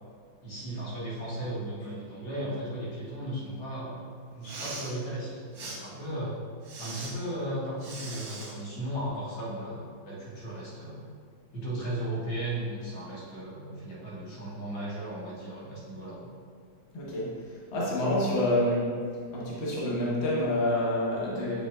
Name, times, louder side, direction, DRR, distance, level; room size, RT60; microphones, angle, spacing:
voice 1, 0.4-6.4 6.8-11.0 11.5-16.3, right 1 dB, 75° left, -7 dB, 2.3 m, -36 dB
Respiratory sounds, 4.3-4.9 5.5-5.8 6.6-7.1 7.8-8.5, right 3 dB, 55° right, 1.3 m, -40 dB
voice 2, 16.9-17.3 17.7-19.0 19.3-21.7, left 1 dB, 40° left, -6 dB, 1.2 m, -27 dB
7.6 x 5.5 x 2.4 m, 2.2 s
omnidirectional pair, 2.2 m